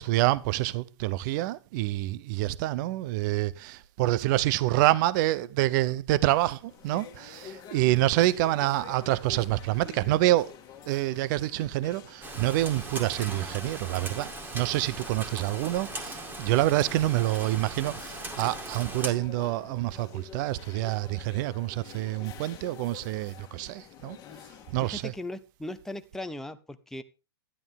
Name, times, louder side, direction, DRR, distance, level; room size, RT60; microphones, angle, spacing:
voice 1, 0.0-10.5 10.9-24.2 24.7-25.1, right 16 dB, 45° right, 0.7 m, -27 dB
sound 1, 6.5-25.0, left 8 dB, 25° left, 1.9 m, -49 dB
Rain, 12.2-19.1, right 2 dB, 15° right, 2.2 m, -39 dB
voice 2, 24.8-27.0, left 1 dB, 5° left, 0.8 m, -38 dB
12.0 x 11.0 x 3.6 m
hypercardioid pair, 135°, 14 cm